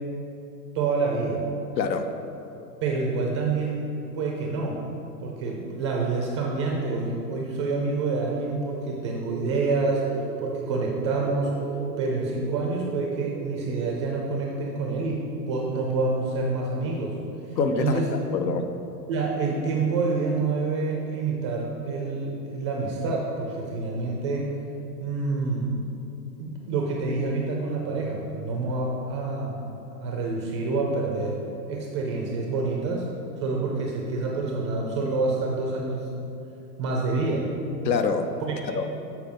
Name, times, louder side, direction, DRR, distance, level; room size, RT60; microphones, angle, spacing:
voice 1, 0.7-1.4 2.8-4.8 5.2-10.1 10.4-11.6 12.0-17.2 17.4-18.1 19.1-24.6 25.0-25.7 26.4-29.7 29.9-31.4 31.7-33.1 33.4-36.1 36.8-37.5 38.4-39.2, right 3 dB, 20° right, -1 dB, 0.3 m, -27 dB
voice 2, 1.8-2.1 17.6-18.7 37.8-38.3 38.7-38.9, left 4 dB, 85° left, 7 dB, 0.8 m, -25 dB
sound 1, 9.2-14.2, right 8 dB, 85° right, 0.6 m, -36 dB
7.4 x 4.4 x 5.4 m, 2.8 s
hypercardioid pair, 125°, 50 cm